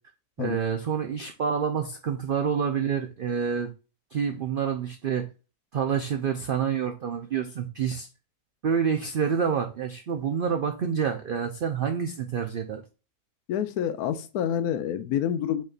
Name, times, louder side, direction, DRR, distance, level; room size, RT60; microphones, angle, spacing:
voice 1, 0.4-3.7 4.1-5.3 5.7-8.1 8.6-12.8, right 7 dB, 85° right, 5 dB, 0.4 m, -27 dB
voice 2, 13.5-15.6, left 9 dB, 80° left, 11 dB, 1.1 m, -28 dB
5.2 x 3.7 x 2.4 m, 0.32 s
omnidirectional pair, 1.6 m